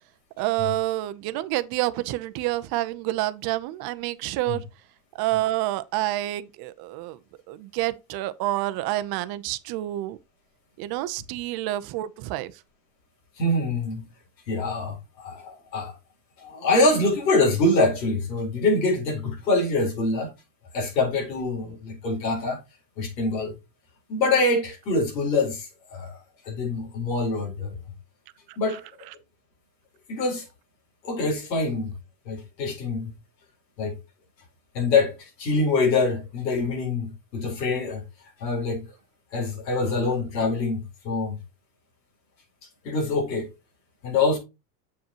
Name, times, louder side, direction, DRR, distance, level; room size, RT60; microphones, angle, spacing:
voice 1, 0.4-4.6 5.1-7.2 7.5-10.2 10.8-12.5 28.5-28.8, right 16 dB, 50° right, 0.9 m, -28 dB
voice 2, 13.4-14.0 14.5-15.9 16.4-20.3 20.7-22.6 23.0-23.6 24.1-26.2 26.4-27.8 28.6-28.8 30.1-30.5 31.0-31.9 32.2-33.1 33.8-34.0 34.7-38.0 38.4-38.9 39.3-41.4 42.8-43.5 44.0-44.4, left 2 dB, 90° left, 4.6 m, -25 dB
7.3 x 7.2 x 3.0 m
supercardioid pair, 110°, 49 cm